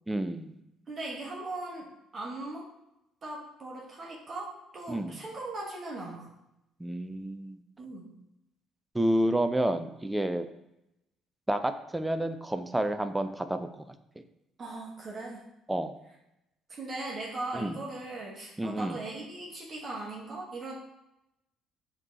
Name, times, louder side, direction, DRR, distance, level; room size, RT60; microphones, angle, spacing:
voice 1, 0.1-0.5 4.9-5.2 6.8-7.6 8.9-10.5 11.5-13.9 15.7-15.9 17.5-17.8 18.6-19.0, right 1 dB, 10° right, 9 dB, 0.4 m, -29 dB
voice 2, 0.9-1.9 2.1-2.6 3.2-6.3 7.8-8.1 14.6-15.4 16.7-20.7, right 2 dB, 40° right, -3 dB, 1.1 m, -39 dB
4.9 x 2.9 x 3.1 m, 0.86 s
figure-of-eight pair, 50°, 0 cm